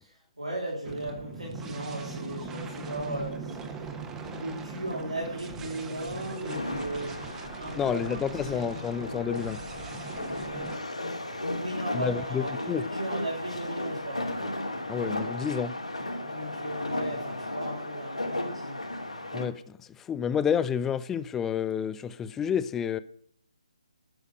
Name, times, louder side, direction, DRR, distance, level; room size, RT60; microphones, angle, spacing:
voice 1, 0.0-3.6 4.2-7.2 7.6-8.8 10.5-14.3 16.2-18.8, right 1 dB, 80° right, 4.8 m, -37 dB
sound 1, 0.8-10.8, right 4 dB, 10° right, 1.1 m, -40 dB
sound 2, 6.5-19.5, left 1 dB, 80° left, 3.0 m, -35 dB
voice 2, 7.7-9.6 11.9-12.8 14.9-15.8 19.3-23.0, left 8 dB, 10° left, 0.4 m, -30 dB
12.5 x 6.4 x 7.6 m
figure-of-eight pair, 145°, 4 cm